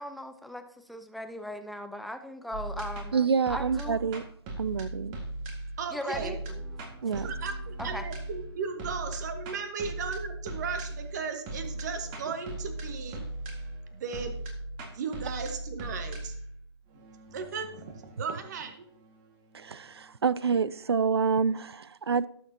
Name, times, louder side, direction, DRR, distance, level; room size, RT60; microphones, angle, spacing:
voice 1, 0.0-3.1 3.5-4.0 5.9-6.6 7.2-7.3 7.8-8.0, left 1 dB, ahead, 0.5 m, -38 dB
sound 1, 2.5-19.7, right 1 dB, 25° right, 1.8 m, -39 dB
voice 2, 3.1-4.2 4.6-5.2 7.0-7.3 19.5-22.3, right 6 dB, 65° right, 0.5 m, -27 dB
voice 3, 5.8-6.3 7.2-13.2 13.9-14.4 14.9-16.3 17.3-18.8, right 5 dB, 40° right, 1.5 m, -36 dB
18.0 x 7.1 x 2.8 m
figure-of-eight pair, 130°, 14 cm